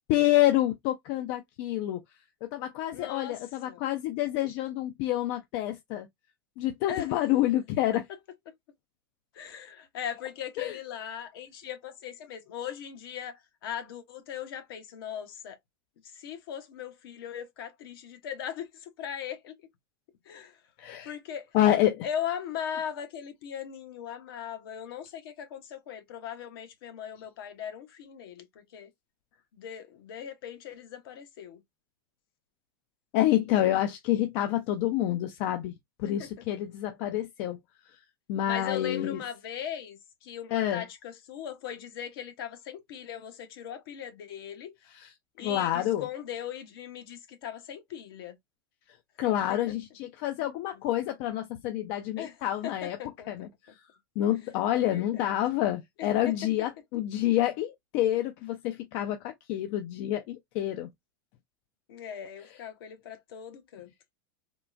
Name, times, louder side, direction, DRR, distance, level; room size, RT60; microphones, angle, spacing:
voice 1, 0.1-2.0 2.4-6.1 6.6-8.0 10.6-10.8 20.8-21.1 21.5-22.1 33.1-37.6 38.3-39.2 40.5-40.8 44.9-45.1 45.4-46.0 49.2-53.0 53.3-53.8 54.2-60.9, left 13 dB, 55° left, 0.5 m, -28 dB
voice 2, 2.9-3.4 3.7-3.8 6.9-7.1 8.5-8.6 9.3-15.6 16.0-19.6 20.2-20.6 21.0-21.5 22.0-28.9 29.5-31.6 36.0-36.5 38.4-44.7 45.4-48.4 49.5-49.6 52.2-52.3 52.6-53.5 54.7-55.3 56.0-56.1 61.9-63.9, left 9 dB, 70° left, 1.0 m, -39 dB
3.7 x 2.1 x 2.5 m
hypercardioid pair, 105°, 12 cm